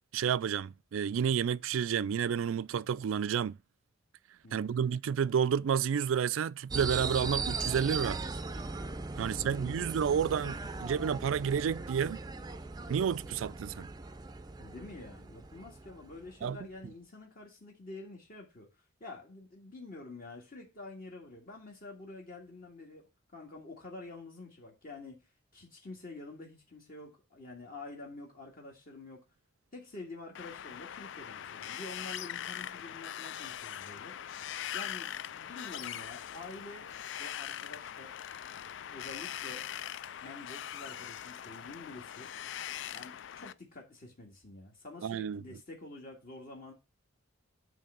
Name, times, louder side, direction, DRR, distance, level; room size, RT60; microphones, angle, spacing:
voice 1, 0.1-3.6 4.5-8.2 9.2-12.2 12.9-13.9 16.4-16.6 45.0-45.4, right 7 dB, 80° right, 0.3 m, -30 dB
voice 2, 4.4-4.8 9.1-9.8 14.6-18.7 19.0-25.2 25.5-29.2 29.7-34.1 34.7-36.9 37.2-38.2 38.9-39.7 40.2-42.3 42.9-46.7, left 2 dB, 45° left, 1.9 m, -48 dB
sound 1, 6.7-16.6, right 3 dB, 20° right, 0.5 m, -39 dB
Wind, 30.4-43.5, left 10 dB, 65° left, 0.3 m, -41 dB
8.9 x 3.3 x 6.7 m
head